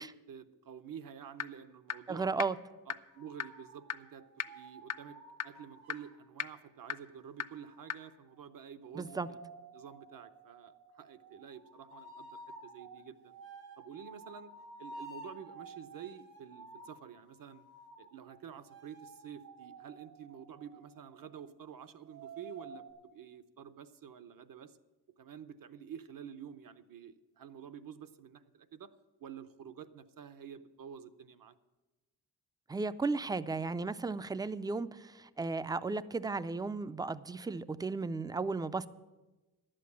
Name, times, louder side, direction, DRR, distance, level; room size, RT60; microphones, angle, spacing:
voice 1, 0.0-2.3 2.9-5.2 5.4-9.4 9.7-13.3 13.8-14.5 14.8-17.6 18.0-22.8 23.1-24.8 25.2-28.9 29.2-31.5, right 8 dB, 60° right, 12 dB, 0.8 m, -49 dB
sound 1, 1.4-1.5 1.9-2.0 2.4-2.5 2.9-3.0 3.4-3.5 3.9-4.0 4.4-4.5 4.9-5.0 5.4-5.5 5.9-6.0 6.4-6.5 6.9-7.0 7.4-7.5 7.9-8.0, left 9 dB, 45° left, 0.6 m, -34 dB
voice 2, 2.1-2.6 8.9-9.3 32.7-38.9, right 3 dB, 10° right, 15 dB, 0.3 m, -35 dB
sound 2, 3.1-6.2 7.5-21.5 22.0-22.9, right 2 dB, 85° right, 2.7 m, -52 dB
11.0 x 7.7 x 8.3 m, 1.1 s
wide cardioid pair, 105°, 38 cm